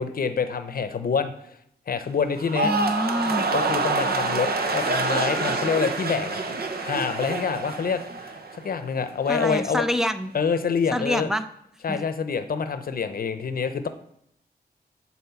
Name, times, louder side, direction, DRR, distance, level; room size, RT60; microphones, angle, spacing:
voice 1, 0.0-1.3 1.9-2.7 3.5-6.5 6.8-8.0 8.6-9.8 10.3-11.3 11.8-13.9, left 6 dB, 60° left, 10 dB, 0.7 m, -26 dB
sound 1, 2.3-8.7 9.0-9.5, right 3 dB, 65° right, 0.9 m, -27 dB
voice 2, 2.6-3.5 9.3-10.3 10.9-11.4 11.9-12.0, equal, 5° right, 10 dB, 0.4 m, -26 dB
8.7 x 4.3 x 7.0 m, 0.76 s
wide cardioid pair, 160°, 17 cm